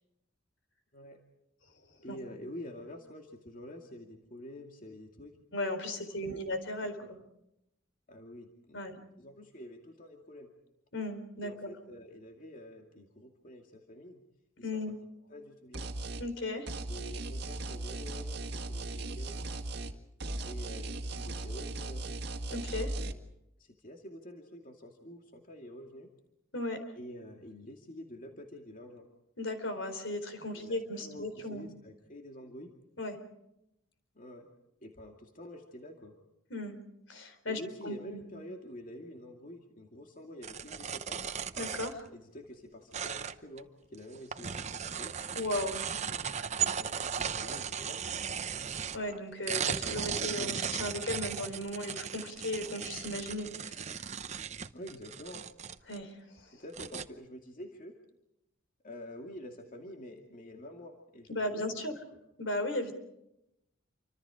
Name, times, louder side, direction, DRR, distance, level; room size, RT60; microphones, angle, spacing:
voice 1, 2.0-5.4 6.3-6.4 7.0-7.1 8.1-8.8 9.2-10.5 11.4-14.2 14.6-15.0 15.3-15.9 16.9-19.5 20.4-22.2 23.6-26.1 26.9-29.1 30.5-32.7 34.1-34.5 34.8-36.2 37.5-41.2 42.1-45.1 45.9-48.2 54.7-55.4 56.5-57.9 58.8-62.0, left 1 dB, 40° left, 2 dB, 2.5 m, -48 dB
voice 2, 5.5-7.2 8.7-9.0 10.9-11.7 14.6-15.0 16.2-16.7 22.5-22.9 26.5-26.8 29.4-31.7 33.0-33.2 36.5-36.7 37.1-38.2 41.6-42.1 45.4-45.8 48.9-54.1 55.9-56.2 61.3-61.9 62.4-62.9, left 1 dB, 65° left, 8 dB, 4.0 m, -36 dB
sound 1, 15.7-16.3 16.7-20.0 20.2-23.1, right 2 dB, 55° right, 1.9 m, -37 dB
sound 2, 40.4-42.1 42.9-43.6 44.0-49.2 49.5-56.0 56.4-56.5 56.7-57.1, right 7 dB, 35° right, 0.8 m, -36 dB
28.5 x 25.5 x 5.0 m, 0.85 s
head